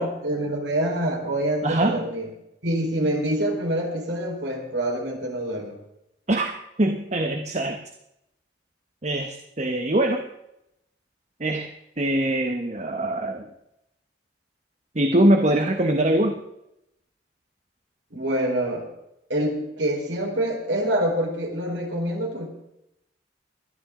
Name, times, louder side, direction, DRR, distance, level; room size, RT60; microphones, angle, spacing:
voice 1, 0.0-2.3 2.6-5.8 18.1-18.9 19.3-22.5, right 1 dB, 85° right, 0 dB, 4.5 m, -26 dB
voice 2, 1.6-2.0 6.3-6.5 6.8-7.8 9.0-10.2 11.4-11.7 12.0-13.5 14.9-16.4, right 1 dB, 40° right, 5 dB, 1.2 m, -22 dB
21.5 x 13.5 x 3.8 m, 0.83 s
head